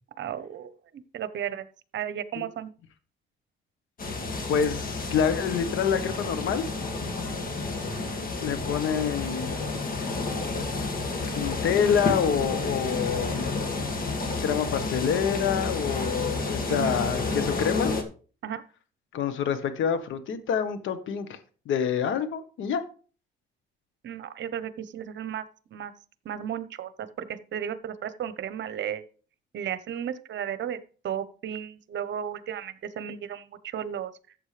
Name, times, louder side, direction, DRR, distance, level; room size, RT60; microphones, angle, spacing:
voice 1, 0.2-1.7 1.9-2.7 16.7-16.9 18.4-18.6 24.0-25.4 25.7-25.9 26.2-29.0 29.5-30.8 31.0-34.1, right 9 dB, 65° right, 1.0 m, -34 dB
sound 1, 4.0-18.0, left 3 dB, 45° left, 2.3 m, -30 dB
voice 2, 4.5-6.6 8.4-9.8 11.3-13.6 14.4-17.9 19.1-21.4 21.6-22.8, left 7 dB, 75° left, 1.3 m, -27 dB
13.5 x 8.0 x 3.4 m
cardioid pair, 90°, 20 cm